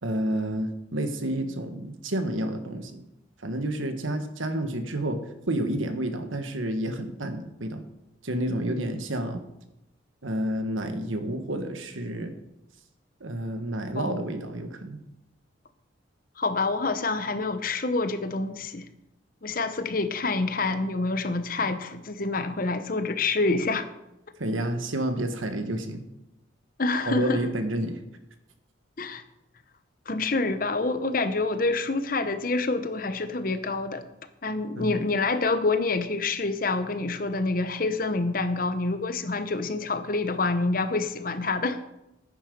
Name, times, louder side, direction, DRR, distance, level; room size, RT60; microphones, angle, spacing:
voice 1, 0.0-3.0 3.4-5.2 5.5-7.8 8.2-9.4 10.2-12.3 13.2-15.0 24.4-26.0 27.1-28.0 34.7-35.0, right 1 dB, 85° right, 7 dB, 1.4 m, -30 dB
voice 2, 16.4-18.8 19.4-23.9 26.8-27.4 29.0-29.2 30.1-34.0 34.4-41.8, left 3 dB, 45° left, 10 dB, 0.9 m, -27 dB
10.0 x 9.7 x 5.3 m, 0.90 s
head